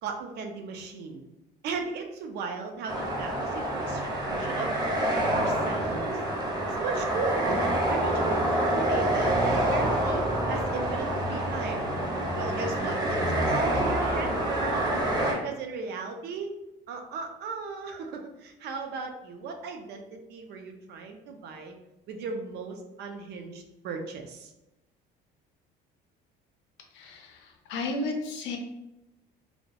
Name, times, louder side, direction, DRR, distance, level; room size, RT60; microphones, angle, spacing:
voice 1, 0.0-1.3 1.6-4.7 5.3-6.2 6.6-11.9 12.4-15.1 15.4-16.5 16.9-21.7 22.1-24.5, right 4 dB, 65° right, 4 dB, 0.4 m, -36 dB
sound 1, 2.9-15.3, right 1 dB, 20° right, 0.6 m, -27 dB
voice 2, 26.9-28.6, left 2 dB, 85° left, 3 dB, 0.5 m, -33 dB
2.3 x 2.0 x 2.7 m, 0.94 s
cardioid pair, 120°, 19 cm